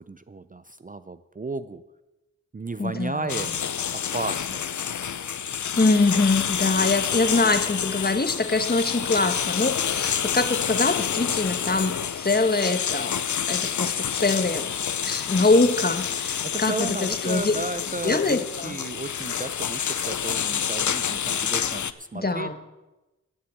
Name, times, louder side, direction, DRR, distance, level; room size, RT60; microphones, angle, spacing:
voice 1, 0.0-1.8 2.5-3.5 3.9-4.6 16.4-22.7, right 3 dB, 30° right, 12 dB, 0.4 m, -34 dB
voice 2, 2.8-3.5 5.8-14.7 15.0-17.5 18.0-18.8 22.1-22.6, left 3 dB, 30° left, 9 dB, 1.1 m, -24 dB
sound 1, 3.3-21.9, left 8 dB, 75° left, 0.5 m, -28 dB
9.6 x 7.6 x 8.5 m, 1.1 s
wide cardioid pair, 55°, 30 cm